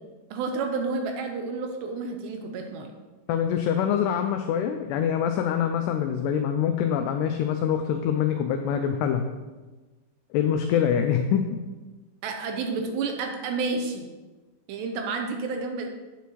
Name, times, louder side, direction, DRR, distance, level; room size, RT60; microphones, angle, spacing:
voice 1, 0.3-2.9 12.2-14.1 14.7-15.9, right 4 dB, 80° right, 4 dB, 2.7 m, -30 dB
voice 2, 3.3-9.3 10.3-11.4, left 8 dB, 90° left, 6 dB, 2.3 m, -25 dB
9.2 x 8.4 x 3.1 m, 1.2 s
omnidirectional pair, 5.3 m